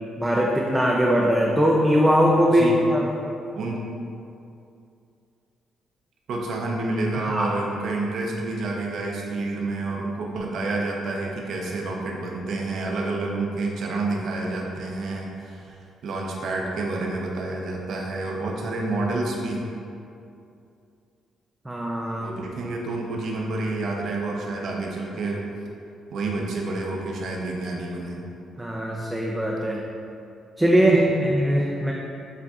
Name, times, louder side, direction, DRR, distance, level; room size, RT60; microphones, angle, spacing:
voice 1, 0.2-3.1 7.1-7.6 21.7-22.3 28.6-29.8 30.6-31.9, equal, 10° right, -2 dB, 0.4 m, -21 dB
voice 2, 6.3-15.8 16.0-19.6 22.2-25.4 26.1-28.2 30.9-31.3, right 2 dB, 70° right, -1 dB, 0.6 m, -29 dB
7.3 x 2.6 x 2.4 m, 2.6 s
cardioid pair, 90°, 0 cm